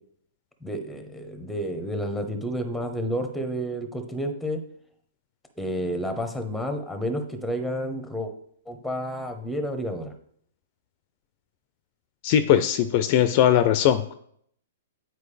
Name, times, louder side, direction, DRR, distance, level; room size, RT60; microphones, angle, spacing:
voice 1, 0.6-4.6 5.6-8.3 8.7-10.1, equal, ahead, 7 dB, 0.9 m, -30 dB
voice 2, 12.2-14.1, left 10 dB, 45° left, 11 dB, 0.4 m, -20 dB
8.2 x 4.5 x 3.3 m, 0.66 s
hypercardioid pair, 130°, 0 cm